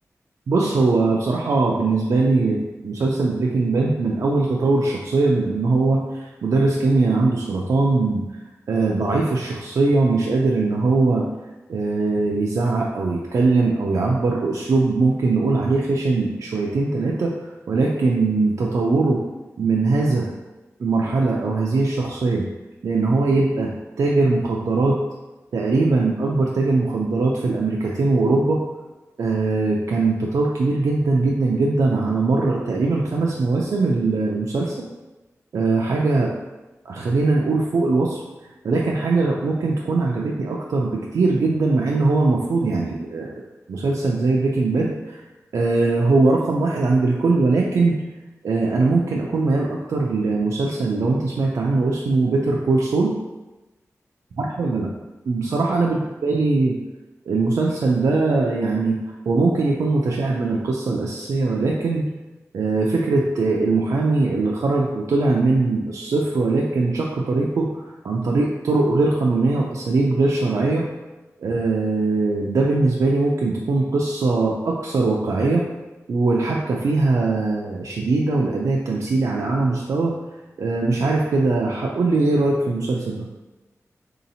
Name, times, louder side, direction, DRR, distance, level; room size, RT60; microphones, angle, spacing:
voice 1, 0.5-8.2 8.7-11.2 11.7-17.3 17.7-19.2 19.6-20.3 20.8-22.4 22.8-23.7 24.0-25.0 25.5-28.6 29.2-34.9 35.5-36.3 36.9-38.2 38.6-43.4 43.7-45.2 45.5-48.0 48.4-53.1 54.4-54.9 55.3-56.8 57.3-59.0 59.3-62.1 62.5-67.7 68.0-70.9 71.4-75.6 76.1-80.1 80.6-83.3, right 3 dB, 85° right, -2 dB, 0.3 m, -21 dB
3.9 x 2.8 x 2.7 m, 1.1 s
wide cardioid pair, 105°, 6 cm